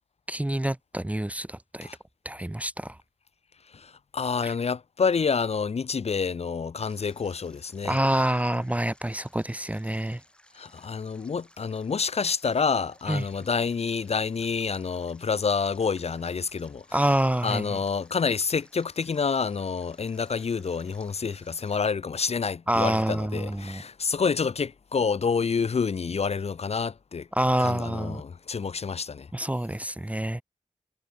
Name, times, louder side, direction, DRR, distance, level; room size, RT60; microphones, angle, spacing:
voice 1, 0.3-1.9 2.2-3.0 4.4-4.5 7.8-10.2 13.1-13.3 16.9-17.8 22.7-23.8 27.3-28.2 29.3-30.4, right 1 dB, 10° right, 0.4 m, -27 dB
voice 2, 3.7-8.0 10.5-16.9 17.4-27.3 27.6-29.3, left 5 dB, 55° left, 0.4 m, -28 dB
Stream, 6.8-21.8, equal, 10° left, 4.2 m, -59 dB
cardioid pair, 45°, 13 cm